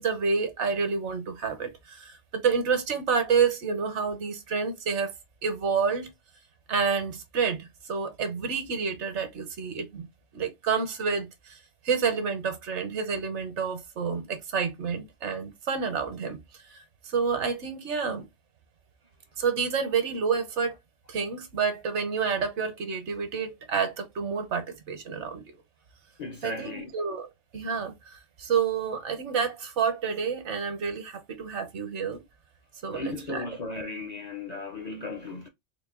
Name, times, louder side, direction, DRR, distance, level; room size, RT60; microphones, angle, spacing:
voice 1, 0.0-5.1 5.4-6.1 6.7-10.1 10.3-11.6 11.8-16.4 16.7-18.2 19.4-20.7 21.1-25.4 26.4-32.2 32.8-33.4, right 6 dB, 75° right, 1.1 m, -29 dB
voice 2, 26.2-27.0 32.9-35.5, left 3 dB, 50° left, 0.5 m, -36 dB
3.8 x 2.1 x 3.6 m
omnidirectional pair, 1.2 m